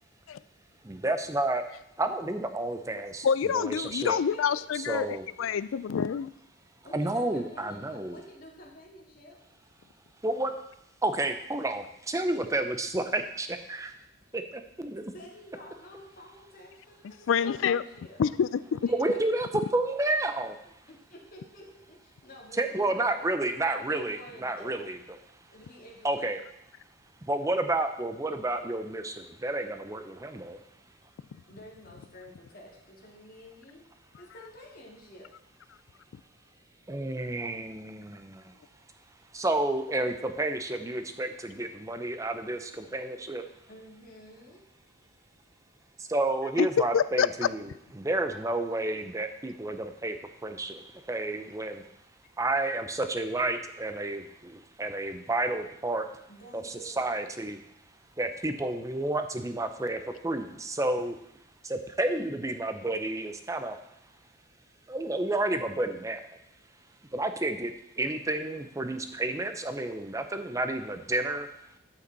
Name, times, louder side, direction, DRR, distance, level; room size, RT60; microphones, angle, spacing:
voice 1, 0.8-1.6 2.0-3.3 3.5-4.2 4.7-5.3 6.9-8.2 10.2-10.5 11.0-13.9 14.3-15.0 18.9-20.6 22.6-25.0 26.0-26.4 27.3-30.6 36.9-38.5 39.3-43.5 46.0-47.7 48.0-50.2 50.4-51.8 52.4-56.1 56.5-57.6 58.2-61.2 61.6-63.8 64.9-66.3 67.1-71.5, right 2 dB, 15° right, 8 dB, 0.6 m, -30 dB
voice 2, 3.2-6.3 17.3-17.8 18.2-18.9 46.6-46.7 46.9-47.5, left 7 dB, 80° left, 17 dB, 0.4 m, -27 dB
voice 3, 6.8-9.4 14.8-18.2 18.8-19.2 20.9-23.2 23.7-24.8 25.5-26.3 31.5-33.8 34.2-35.3 43.7-44.6 56.3-57.0, left 1 dB, 45° left, -2 dB, 2.2 m, -50 dB
12.5 x 5.9 x 4.1 m, 0.78 s
head